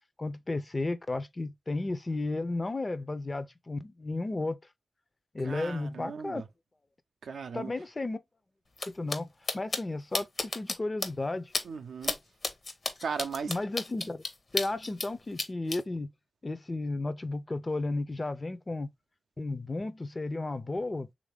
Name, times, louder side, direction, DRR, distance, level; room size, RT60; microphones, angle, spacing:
voice 1, 0.2-4.6 5.3-6.4 7.5-8.2 8.9-11.5 13.5-14.2 14.5-16.1 16.4-18.9 19.4-21.1, left 2 dB, 35° left, 0.5 m, -33 dB
voice 2, 5.4-6.5 7.2-7.7 11.6-12.2 13.0-13.5, right 6 dB, 80° right, 0.4 m, -37 dB
sound 1, 8.8-8.9 9.1-9.2 9.5-9.8 10.1-10.7 11.0-11.1 11.5-11.6 12.0-12.2 12.4-15.1 15.4-15.8, left 3 dB, 55° left, 0.9 m, -31 dB
3.2 x 2.6 x 3.3 m
cardioid pair, 40°, 0 cm